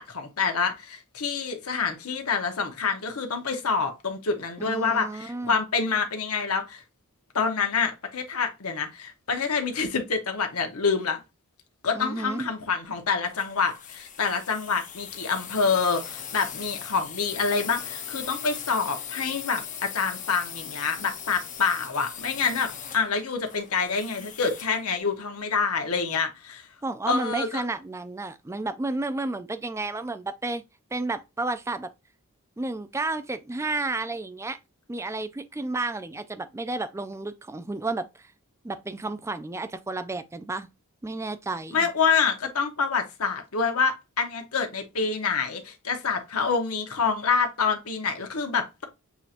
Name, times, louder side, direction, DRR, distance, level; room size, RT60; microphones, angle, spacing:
voice 1, 0.0-6.8 7.3-11.2 11.8-26.7 27.1-27.6 41.7-48.8, left 5 dB, 75° left, 1.0 m, -27 dB
voice 2, 4.6-5.6 11.9-12.5 26.8-30.6 30.9-31.9 32.6-34.6 34.9-38.3 38.6-40.7 41.0-41.9, right 2 dB, 10° right, 0.3 m, -31 dB
sound 1, 13.3-24.8, left 8 dB, 35° left, 0.7 m, -39 dB
7.0 x 2.8 x 2.5 m
head